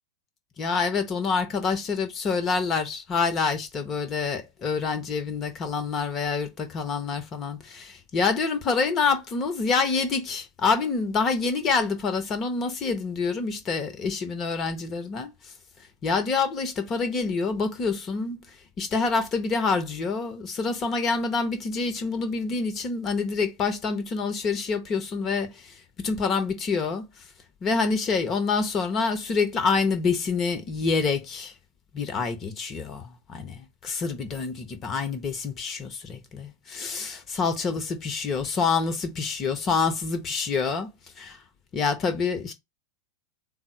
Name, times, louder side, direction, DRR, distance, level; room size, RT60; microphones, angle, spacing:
voice 1, 0.6-15.3 16.0-18.4 18.8-27.0 27.6-31.5 31.9-40.9 41.2-41.4 41.7-42.5, left 4 dB, 30° left, 0.8 m, -27 dB
3.9 x 2.0 x 4.4 m
figure-of-eight pair, 90°, 0 cm